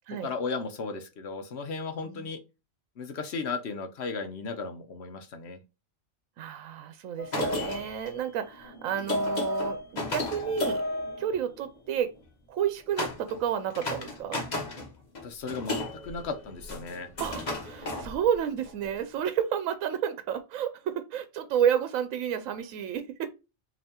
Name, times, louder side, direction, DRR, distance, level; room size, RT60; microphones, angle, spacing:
voice 1, 0.1-2.4 3.0-5.6 15.2-15.8 16.0-17.1, left 4 dB, 60° left, 1.0 m, -35 dB
voice 2, 6.4-10.8 11.2-12.1 12.5-14.4 17.2-23.3, right 9 dB, 85° right, 1.0 m, -30 dB
sound 1, 7.2-11.9 13.0-13.4 13.7-14.9 15.1-18.7, left 2 dB, 35° left, 1.1 m, -33 dB
5.4 x 2.9 x 2.9 m
omnidirectional pair, 1.4 m